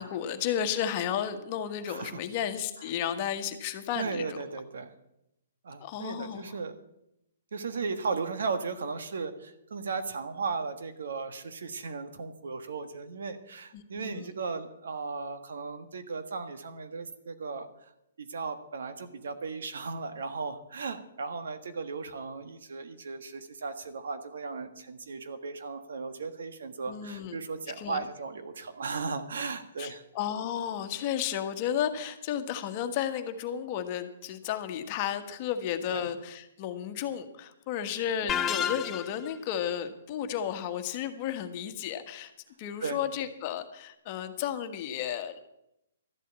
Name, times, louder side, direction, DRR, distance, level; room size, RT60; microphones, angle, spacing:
voice 1, 0.0-4.4 5.8-6.5 13.7-14.3 26.9-27.4 27.8-28.0 29.8-42.3 42.6-45.4, left 9 dB, 40° left, 8 dB, 1.4 m, -33 dB
voice 2, 1.9-2.2 3.9-4.9 5.6-6.7 7.5-17.7 18.2-30.0 35.9-36.1 38.2-38.3 42.8-43.0, right 4 dB, 70° right, 9 dB, 1.5 m, -36 dB
sound 1, 38.3-39.3, left 9 dB, 20° left, 0.6 m, -30 dB
13.0 x 8.3 x 8.2 m, 0.83 s
hypercardioid pair, 140°, 0 cm